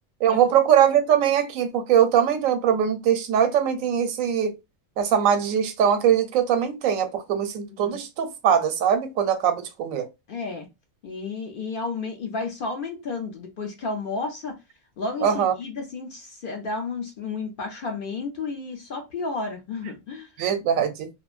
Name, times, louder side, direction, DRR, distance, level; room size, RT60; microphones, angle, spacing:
voice 1, 0.2-4.5 5.0-10.1 15.2-15.5 20.4-21.1, right 8 dB, 85° right, 1.0 m, -21 dB
voice 2, 10.3-10.7 11.0-14.6 15.0-20.3, left 3 dB, 55° left, 0.7 m, -32 dB
3.1 x 2.0 x 2.4 m
omnidirectional pair, 1.4 m